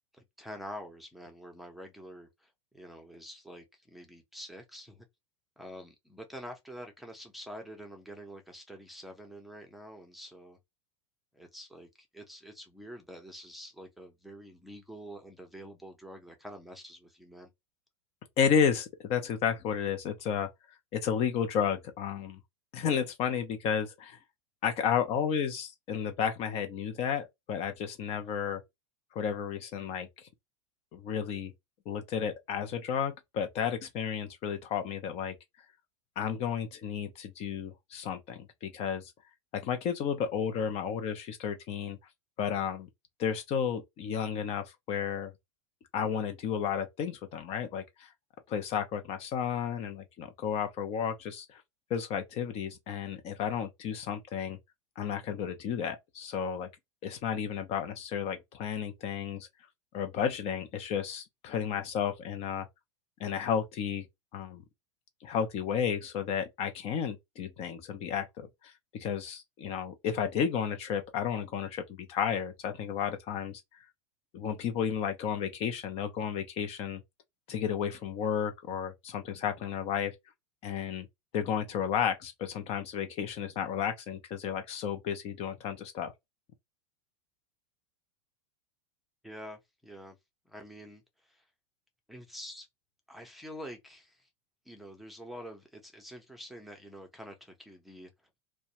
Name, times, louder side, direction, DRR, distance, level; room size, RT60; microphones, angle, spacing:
voice 1, 0.1-5.1 5.6-10.6 11.3-17.5 89.2-90.2 90.5-91.4 92.1-92.7 93.1-94.3 94.7-98.1, equal, ahead, 0.6 m, -47 dB
voice 2, 18.4-20.5 20.9-22.4 22.7-24.2 24.6-28.6 29.1-30.3 30.9-31.5 31.9-35.4 36.2-39.1 39.5-42.0 42.4-42.9 43.2-45.3 45.9-48.1 48.5-51.6 51.9-54.6 55.0-56.7 57.0-59.5 59.9-62.7 63.2-64.1 64.3-64.6 65.2-73.8 74.3-77.0 77.5-80.1 80.6-81.1 81.3-86.1, left 7 dB, 40° left, 0.5 m, -32 dB
2.2 x 2.1 x 2.7 m
hypercardioid pair, 115°, 16 cm